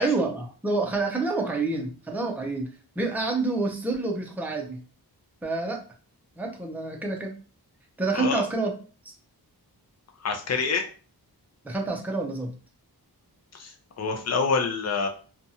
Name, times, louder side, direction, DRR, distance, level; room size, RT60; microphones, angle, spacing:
voice 1, 0.0-4.8 5.4-5.8 6.4-7.3 8.0-8.7 9.1-9.2 11.6-12.5, right 3 dB, 5° right, 1 dB, 0.5 m, -28 dB
voice 2, 10.2-10.9 13.5-15.1, left 4 dB, 40° left, 3 dB, 0.5 m, -27 dB
2.7 x 2.3 x 2.7 m, 0.38 s
wide cardioid pair, 75°, 39 cm